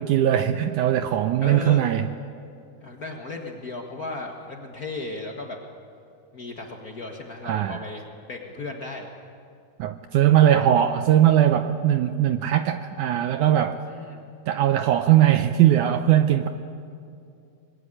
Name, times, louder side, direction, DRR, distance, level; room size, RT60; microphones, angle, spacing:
voice 1, 0.0-2.0 7.4-7.8 9.8-13.8 14.5-16.5, right 11 dB, 80° right, 9 dB, 1.7 m, -20 dB
voice 2, 1.4-1.8 2.8-5.6 6.3-9.1 10.5-10.7 13.9-14.2, left 3 dB, 65° left, 1 dB, 0.8 m, -35 dB
26.0 x 21.0 x 9.9 m, 2.5 s
omnidirectional pair, 4.4 m